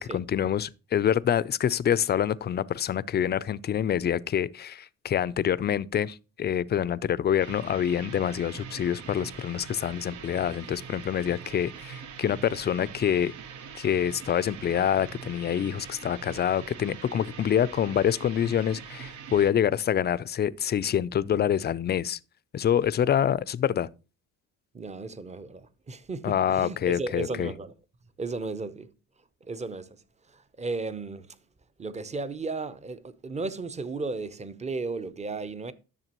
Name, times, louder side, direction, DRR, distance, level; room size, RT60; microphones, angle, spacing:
voice 1, 0.0-13.3 13.7-22.2 22.5-23.9 26.2-27.5, left 9 dB, 35° left, 0.4 m, -26 dB
sound 1, 7.4-19.5, right 7 dB, 75° right, 0.9 m, -43 dB
voice 2, 24.7-27.7 28.2-28.9 29.4-30.0 30.3-31.4 31.8-35.7, right 3 dB, 20° right, 0.7 m, -34 dB
11.0 x 6.8 x 3.0 m
cardioid pair, 90°, 30 cm